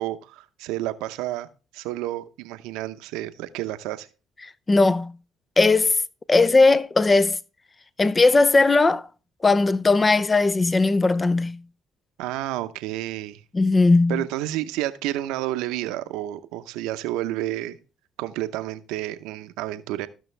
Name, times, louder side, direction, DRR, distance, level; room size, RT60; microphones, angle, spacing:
voice 1, 0.0-1.5 1.7-4.1 12.2-13.4 14.1-17.8 18.2-20.1, right 15 dB, 85° right, 0.7 m, -30 dB
voice 2, 4.7-5.1 5.6-6.0 6.3-7.4 8.0-9.1 9.4-11.6 13.5-14.2, left 3 dB, 25° left, 0.5 m, -18 dB
14.5 x 6.1 x 3.3 m
supercardioid pair, 75°, 0 cm